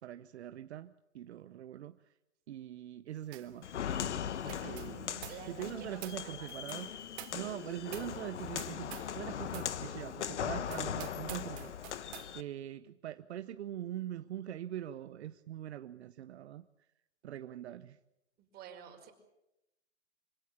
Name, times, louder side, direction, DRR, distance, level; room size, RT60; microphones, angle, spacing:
voice 1, 0.0-2.0 2.5-3.7 4.6-6.9 7.3-11.7 12.3-16.7 17.2-18.0, right 11 dB, 70° right, 12 dB, 1.0 m, -43 dB
sound 1, 3.3-3.6 3.8-9.2 9.5-9.8 10.2-10.3 10.7-12.3, right 14 dB, 50° right, 3.0 m, -50 dB
Walk footsteps, 3.6-12.4, left 9 dB, 80° left, 1.3 m, -39 dB
voice 2, 4.4-4.8 5.3-6.5 18.4-19.1, right 8 dB, 25° right, 3 dB, 5.5 m, -51 dB
25.5 x 17.0 x 8.7 m, 0.89 s
hypercardioid pair, 135°, 34 cm